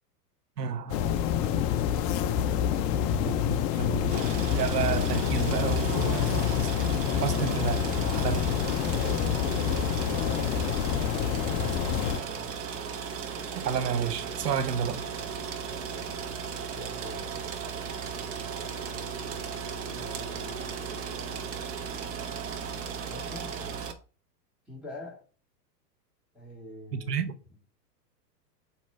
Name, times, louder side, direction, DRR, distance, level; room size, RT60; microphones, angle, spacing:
voice 1, 0.6-1.0 3.2-4.1 4.5-6.7 7.2-8.5 13.6-15.0 26.9-27.3, right 7 dB, 75° right, 1.1 m, -31 dB
sound 1, 0.9-12.2, left 9 dB, 30° left, 0.4 m, -27 dB
sound 2, 4.1-23.9, right 6 dB, 30° right, 1.1 m, -36 dB
voice 2, 8.8-9.6 9.8-12.6 16.7-17.8 19.9-20.7 23.1-23.9 24.7-25.2 26.3-27.3, left 1 dB, ahead, 2.4 m, -45 dB
8.2 x 3.2 x 4.4 m
hypercardioid pair, 110°, 49 cm